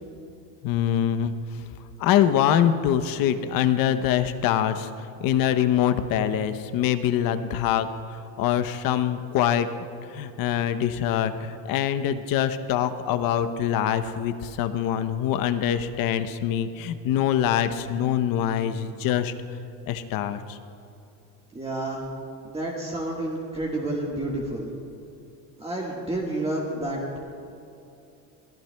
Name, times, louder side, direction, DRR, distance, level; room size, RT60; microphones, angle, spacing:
voice 1, 0.6-1.3 2.0-4.9 5.2-9.7 10.1-19.3 19.9-20.6, left 10 dB, 60° left, 11 dB, 0.8 m, -24 dB
voice 2, 21.5-22.0 22.4-24.7 25.6-27.2, right 1 dB, 15° right, -4 dB, 1.5 m, -30 dB
22.5 x 14.5 x 2.2 m, 2.6 s
cardioid pair, 135°, 39 cm